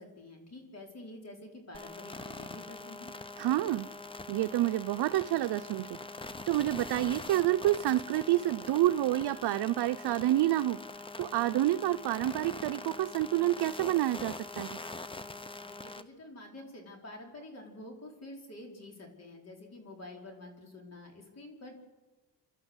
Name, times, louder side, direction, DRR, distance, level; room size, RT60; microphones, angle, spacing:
voice 1, 0.0-3.1 15.6-21.7, left 1 dB, 40° left, 2 dB, 4.7 m, -48 dB
sound 1, 1.7-16.0, left 3 dB, 15° left, 0.8 m, -43 dB
voice 2, 3.4-3.9 4.3-6.0 6.5-10.8 11.2-14.8, right 14 dB, 75° right, 9 dB, 0.7 m, -28 dB
29.5 x 12.5 x 8.2 m, 1.2 s
cardioid pair, 135°, 40 cm